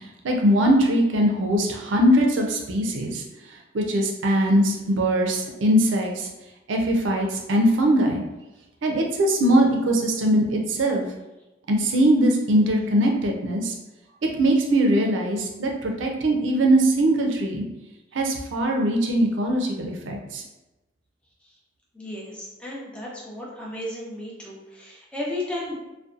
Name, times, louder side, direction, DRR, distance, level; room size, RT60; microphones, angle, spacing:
voice 1, 0.0-3.2 3.7-6.3 6.7-8.2 8.8-11.1 11.7-13.7 14.2-17.6 18.1-20.4, right 1 dB, 80° right, 1 dB, 0.5 m, -21 dB
voice 2, 21.9-25.7, left 1 dB, 5° left, -5 dB, 0.5 m, -34 dB
2.6 x 2.1 x 2.4 m, 0.99 s
head